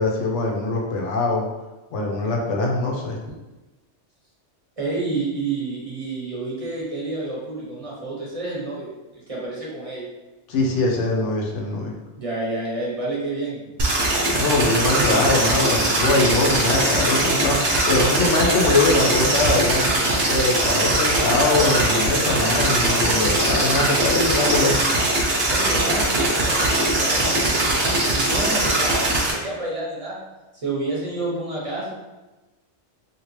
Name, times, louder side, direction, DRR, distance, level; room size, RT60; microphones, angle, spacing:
voice 1, 0.0-1.5 1.9-3.2 10.5-11.9 14.3-17.6 17.9-19.8 20.3-24.8, left 2 dB, 90° left, -1 dB, 1.0 m, -22 dB
voice 2, 4.8-10.1 12.2-13.6 25.5-30.2 30.5-31.9, right 2 dB, 35° right, -5 dB, 0.8 m, -29 dB
sound 1, 13.8-29.3, right 1 dB, 65° right, 1.0 m, -21 dB
2.9 x 2.8 x 3.1 m, 1.1 s
omnidirectional pair, 1.2 m